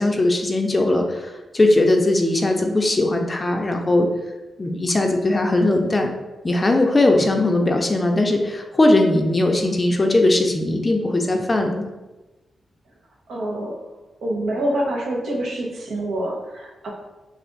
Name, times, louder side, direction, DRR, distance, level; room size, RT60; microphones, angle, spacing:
voice 1, 0.0-4.1 4.6-6.1 6.4-11.8, left 2 dB, 25° left, 3 dB, 0.4 m, -19 dB
voice 2, 13.3-13.7 14.2-16.9, right 1 dB, 80° right, -2 dB, 0.9 m, -26 dB
3.4 x 2.4 x 3.8 m, 1.1 s
wide cardioid pair, 105°, 0 cm